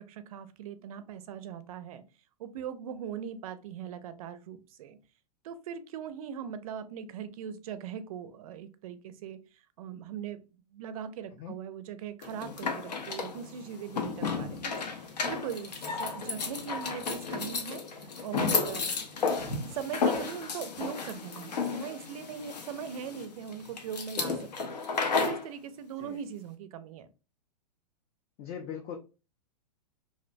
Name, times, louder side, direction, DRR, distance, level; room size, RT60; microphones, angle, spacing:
voice 1, 0.0-2.0 2.4-5.0 5.4-15.7 16.0-18.9 19.6-27.1, right 8 dB, 60° right, 12 dB, 0.4 m, -40 dB
sound 1, 12.2-25.5, left 4 dB, 80° left, 0.6 m, -33 dB
voice 2, 28.4-29.0, left 8 dB, 30° left, 1 dB, 0.4 m, -40 dB
2.6 x 2.1 x 2.5 m, 0.32 s
hypercardioid pair, 115°, 21 cm